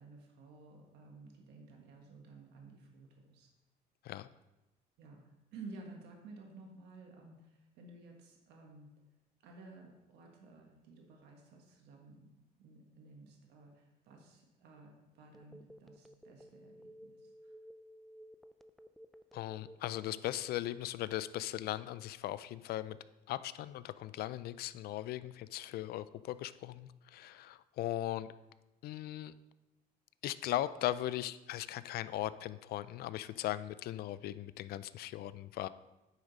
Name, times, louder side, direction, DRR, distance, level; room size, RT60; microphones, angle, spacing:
voice 1, 0.0-3.5 5.0-8.9 9.4-12.3 12.6-17.5, right 3 dB, 80° right, 1 dB, 1.5 m, -54 dB
Telephone, 15.3-20.6, equal, ahead, 0.3 m, -55 dB
voice 2, 19.3-23.0 23.3-28.3 28.8-29.3 30.2-35.7, left 14 dB, 65° left, 15 dB, 0.4 m, -38 dB
9.4 x 5.1 x 4.1 m, 1.0 s
cardioid pair, 110°, 17 cm